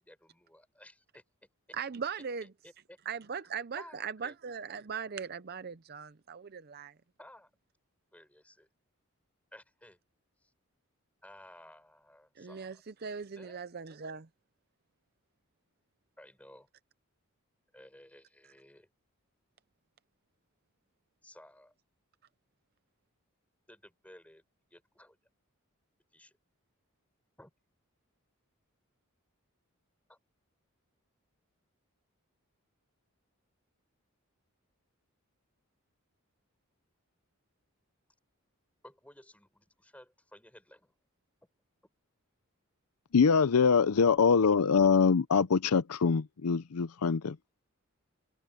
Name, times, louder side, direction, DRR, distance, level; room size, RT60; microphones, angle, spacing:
voice 1, 0.0-1.8 2.4-3.0 3.4-3.5 3.8-4.4 7.2-7.5 8.1-8.7 9.5-10.0 10.4-10.5 11.2-12.8 13.4-13.6 16.2-16.7 17.7-18.9 21.2-21.7 23.7-24.4 24.7-25.2 26.1-26.3 27.4-27.5 30.1-30.2 38.8-41.0, left 1 dB, 5° left, 6.7 m, -55 dB
voice 2, 1.7-2.5 3.1-6.9 12.4-14.3, right 6 dB, 45° right, 0.6 m, -39 dB
voice 3, 43.1-47.4, left 5 dB, 85° left, 0.6 m, -24 dB
head